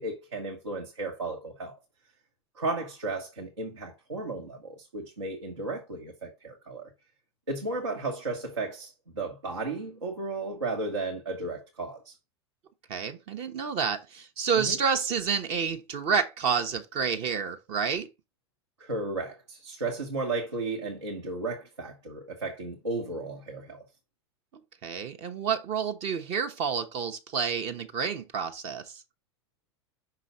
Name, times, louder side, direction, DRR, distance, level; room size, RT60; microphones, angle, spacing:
voice 1, 0.0-1.7 2.6-6.9 7.5-12.1 14.5-14.8 18.8-23.8, right 3 dB, 85° right, 1.2 m, -34 dB
voice 2, 12.9-18.1 24.8-29.0, right 6 dB, 45° right, 0.8 m, -29 dB
5.7 x 4.9 x 3.9 m
figure-of-eight pair, 85°, 15 cm